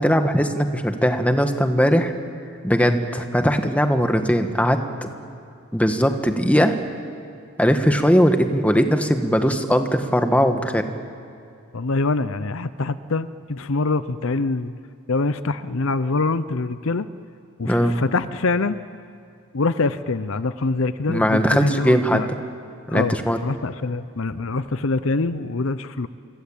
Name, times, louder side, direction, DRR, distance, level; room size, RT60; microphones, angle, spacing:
voice 1, 0.0-2.1 2.6-5.1 5.7-6.8 7.6-10.9 17.6-17.9 21.1-22.2 22.9-23.4, equal, 5° left, 6 dB, 1.4 m, -19 dB
voice 2, 11.7-14.7 15.1-17.1 17.6-18.8 19.5-22.3 22.9-26.1, left 3 dB, 60° left, 13 dB, 0.7 m, -24 dB
27.0 x 25.5 x 8.7 m, 2.4 s
head